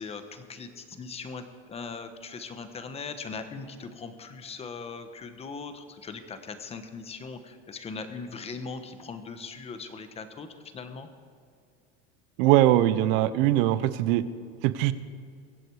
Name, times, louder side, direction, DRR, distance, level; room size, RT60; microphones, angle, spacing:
voice 1, 0.0-10.5 10.7-11.1, left 4 dB, 20° left, 8 dB, 1.1 m, -40 dB
voice 2, 12.4-14.2 14.6-14.9, right 14 dB, 65° right, 14 dB, 0.9 m, -21 dB
23.5 x 7.9 x 4.8 m, 2.3 s
supercardioid pair, 135°, 30 cm